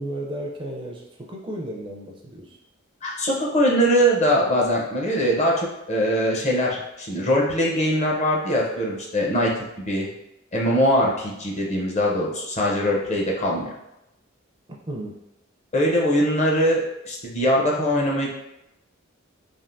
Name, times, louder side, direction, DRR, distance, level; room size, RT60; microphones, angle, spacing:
voice 1, 0.0-2.6 14.9-15.1, right 1 dB, 25° right, -1 dB, 0.5 m, -33 dB
voice 2, 3.0-10.1 10.5-13.7 15.7-18.3, equal, 35° left, -2 dB, 0.6 m, -22 dB
3.4 x 2.4 x 2.5 m, 0.88 s
head